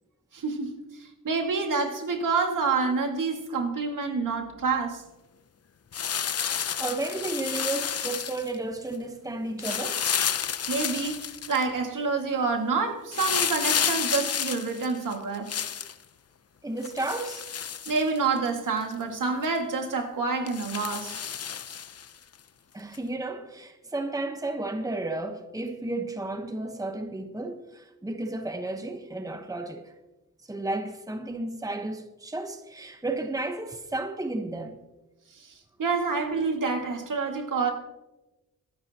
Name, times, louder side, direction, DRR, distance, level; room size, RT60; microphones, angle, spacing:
voice 1, 0.3-5.0 10.7-15.5 17.9-21.2 35.3-37.7, right 4 dB, 70° right, 2.1 m, -28 dB
sound 1, 5.9-8.5 9.6-11.6 13.1-15.9 16.8-18.5 18.9-19.0 19.4-19.6 20.5-22.1 22.9-23.0, left 7 dB, 50° left, 0.7 m, -30 dB
voice 2, 6.2-10.0 16.6-17.5 22.7-29.9 30.5-34.8, right 2 dB, 10° right, 1.1 m, -33 dB
22.5 x 12.0 x 2.9 m
cardioid pair, 85°, 33 cm